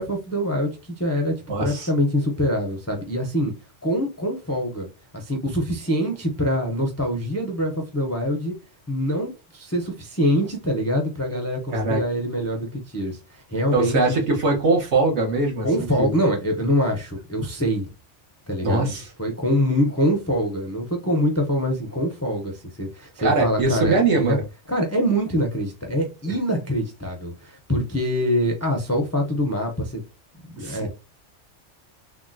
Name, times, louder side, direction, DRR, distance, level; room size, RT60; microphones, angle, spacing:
voice 1, 0.0-1.3 1.6-3.5 3.8-4.9 5.1-8.5 8.9-14.0 15.6-17.9 18.5-18.9 19.2-24.4 24.7-30.0 30.6-30.9, equal, 20° left, 0.5 m, -24 dB
voice 2, 1.5-1.9 11.7-12.0 13.7-16.1 18.6-19.1 23.2-24.4 30.6-30.9, right 3 dB, 70° right, 1.4 m, -22 dB
3.5 x 2.3 x 2.6 m
omnidirectional pair, 1.2 m